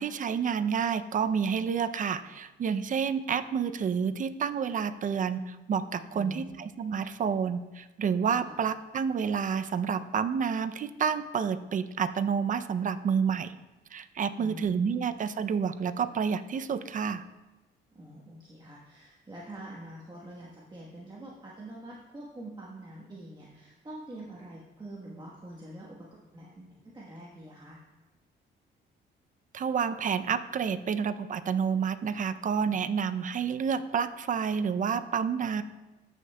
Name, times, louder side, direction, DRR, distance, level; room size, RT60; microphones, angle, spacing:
voice 1, 0.0-13.5 13.9-17.2 29.5-35.6, right 6 dB, 40° right, 12 dB, 0.5 m, -29 dB
voice 2, 6.1-6.7 8.4-8.6 14.4-14.9 17.9-27.8, right 1 dB, 20° right, -5 dB, 1.2 m, -45 dB
13.5 x 6.4 x 2.2 m, 1.1 s
cardioid pair, 90°, 20 cm